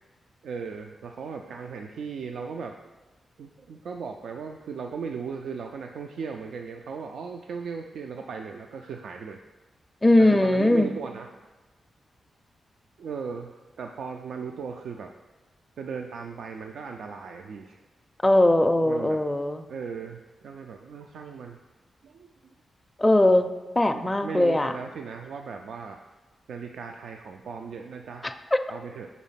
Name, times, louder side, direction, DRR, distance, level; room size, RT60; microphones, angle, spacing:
voice 1, 0.4-2.9 3.4-9.4 10.2-11.3 13.0-15.1 15.8-17.8 18.8-19.2 19.7-21.6 22.0-22.3 23.9-26.0 26.5-28.3 28.7-29.1, right 5 dB, 85° right, 4 dB, 0.3 m, -37 dB
voice 2, 10.0-10.9 18.2-19.6 23.0-23.5 23.8-24.7 28.2-28.6, left 1 dB, 15° left, 7 dB, 0.4 m, -20 dB
5.1 x 4.1 x 5.6 m, 1.2 s
cardioid pair, 95°, 0 cm